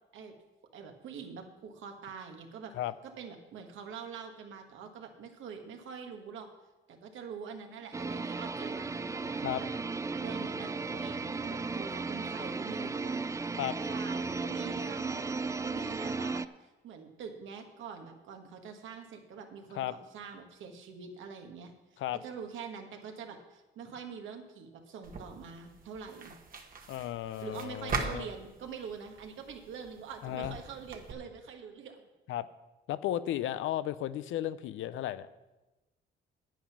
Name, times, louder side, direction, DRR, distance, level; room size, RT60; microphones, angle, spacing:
voice 1, 0.7-2.7 3.0-6.5 6.9-9.7 10.2-13.2 13.9-26.3 27.4-32.0, right 6 dB, 80° right, 4 dB, 1.6 m, -45 dB
sound 1, 7.9-16.5, right 4 dB, 15° right, 0.3 m, -35 dB
sound 2, 25.0-31.1, right 4 dB, 45° right, 1.3 m, -42 dB
voice 2, 26.9-28.3 30.2-30.6 32.3-32.5 32.9-35.3, left 13 dB, 80° left, 15 dB, 0.5 m, -34 dB
9.2 x 9.0 x 6.0 m, 1.1 s
cardioid pair, 90°, 20 cm